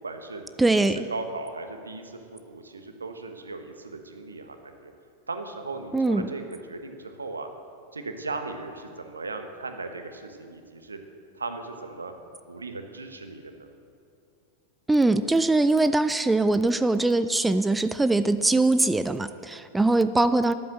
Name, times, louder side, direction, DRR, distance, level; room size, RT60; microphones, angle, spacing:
voice 1, 0.0-0.4 0.7-0.8 1.1-4.9 5.3-6.4 6.7-7.5 7.9-11.0 11.3-12.1 12.5-13.7, right 3 dB, 75° right, 6 dB, 1.4 m, -37 dB
voice 2, 0.6-1.0 5.9-6.3 14.9-20.5, right 2 dB, 10° right, 12 dB, 0.5 m, -22 dB
13.0 x 12.0 x 7.7 m, 2.4 s
figure-of-eight pair, 90°, 0 cm